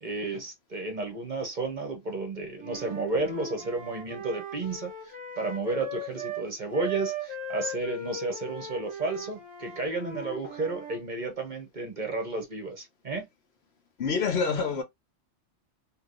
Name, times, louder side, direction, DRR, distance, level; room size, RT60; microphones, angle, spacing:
voice 1, 0.0-13.3, right 3 dB, 45° right, 0.8 m, -32 dB
Wind instrument woodwind instrument, 2.6-6.5 6.7-11.0, right 1 dB, 25° right, 1.3 m, -38 dB
voice 2, 14.0-14.8, left 5 dB, 60° left, 1.0 m, -26 dB
3.1 x 2.9 x 2.5 m
omnidirectional pair, 1.3 m